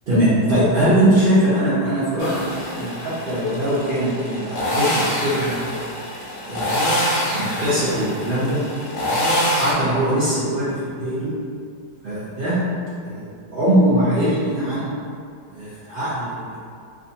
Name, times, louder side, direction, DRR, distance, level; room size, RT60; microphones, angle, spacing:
voice 1, 0.1-5.6 6.4-6.8 7.1-8.6 9.5-11.3 12.0-12.6 13.0-13.2 13.5-14.9 15.5-16.6, right 1 dB, 85° right, -12 dB, 0.4 m, -21 dB
sound 1, 2.2-9.7, equal, 65° left, 0.8 m, -25 dB
2.6 x 2.5 x 2.7 m, 2.3 s
omnidirectional pair, 1.8 m